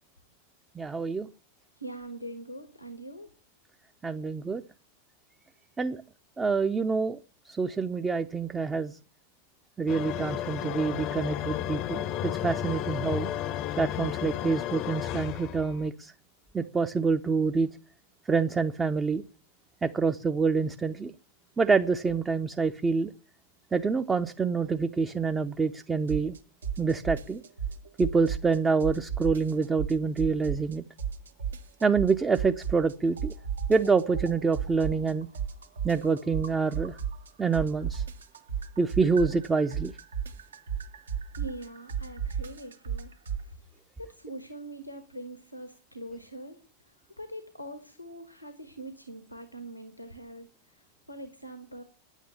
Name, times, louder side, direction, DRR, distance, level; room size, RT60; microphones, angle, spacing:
voice 1, 0.8-1.3 4.0-4.6 5.8-6.0 6.4-7.2 7.5-9.0 9.8-13.3 13.8-16.1 16.5-17.7 18.3-19.2 19.8-21.1 21.6-23.1 23.7-26.3 26.8-27.4 28.0-30.8 31.8-33.3 33.7-35.3 35.8-37.0 37.4-38.0 38.8-39.9, right 4 dB, 15° right, 8 dB, 0.6 m, -26 dB
voice 2, 1.8-3.3 41.4-43.1 44.0-46.6 47.2-50.5 51.1-51.8, right 1 dB, 90° left, 9 dB, 1.3 m, -42 dB
sound 1, 9.9-15.9, left 11 dB, 40° left, 0.7 m, -33 dB
sound 2, 26.1-26.4 26.6-28.6 28.8-30.7 31.0-32.9 33.2-37.3 37.5-43.4, right 8 dB, 70° right, 1.2 m, -33 dB
10.0 x 9.2 x 7.1 m, 0.37 s
figure-of-eight pair, 90°, 0 cm